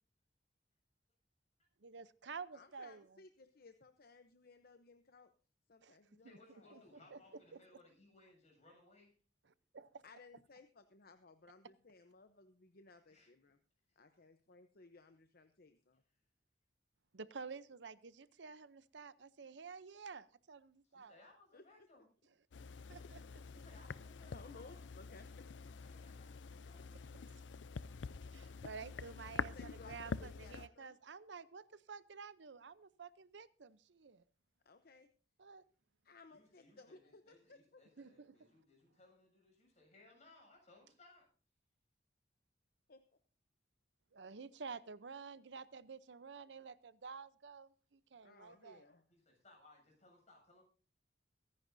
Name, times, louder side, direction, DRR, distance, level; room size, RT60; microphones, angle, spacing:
voice 1, 1.8-3.2 5.8-6.0 6.7-6.8 7.1-7.2 9.7-10.0 17.1-21.2 22.9-23.4 28.3-34.2 35.4-35.6 38.0-38.5 44.1-48.8, right 5 dB, 75° right, 16 dB, 0.7 m, -51 dB
voice 2, 2.5-5.3 5.7-7.2 10.0-13.6 14.0-16.0 21.5-21.9 24.3-25.4 29.3-31.0 34.6-35.1 36.0-37.8 42.9-43.0 48.2-49.0, left 3 dB, 55° left, 9 dB, 0.9 m, -60 dB
voice 3, 6.2-9.2 13.1-13.3 13.9-14.2 20.8-22.1 23.5-24.9 25.8-27.2 36.3-41.3 49.1-50.6, left 2 dB, 40° left, 1 dB, 7.3 m, -65 dB
sound 1, 22.5-30.7, left 5 dB, 90° left, 0.5 m, -47 dB
23.5 x 10.5 x 2.7 m, 0.39 s
head